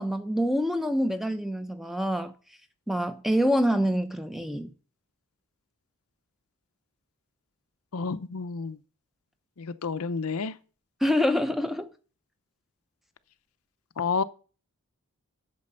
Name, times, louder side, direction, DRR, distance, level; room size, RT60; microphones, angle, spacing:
voice 1, 0.0-2.3 2.9-4.7 11.0-11.9, equal, ahead, 0.7 m, -26 dB
voice 2, 7.9-8.8 9.6-10.5 14.0-14.2, left 5 dB, 80° left, 0.7 m, -30 dB
8.5 x 6.8 x 5.5 m
head